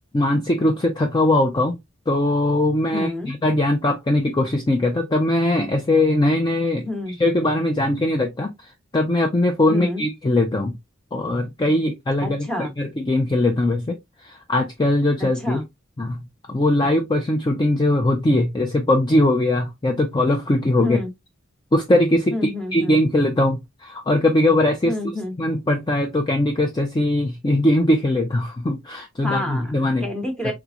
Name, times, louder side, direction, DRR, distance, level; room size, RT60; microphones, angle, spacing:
voice 1, 0.1-1.8 2.1-6.8 7.2-10.7 11.1-14.0 14.2-15.6 16.0-16.2 16.5-21.0 21.7-24.9 25.4-30.1 30.4-30.5, left 1 dB, 20° left, 0.4 m, -20 dB
voice 2, 2.9-3.3 6.8-7.2 9.7-10.0 12.2-12.7 15.4-15.6 20.8-21.1 22.3-22.9 24.9-25.3 29.2-30.5, left 1 dB, 5° left, 0.9 m, -29 dB
3.5 x 3.0 x 2.4 m
head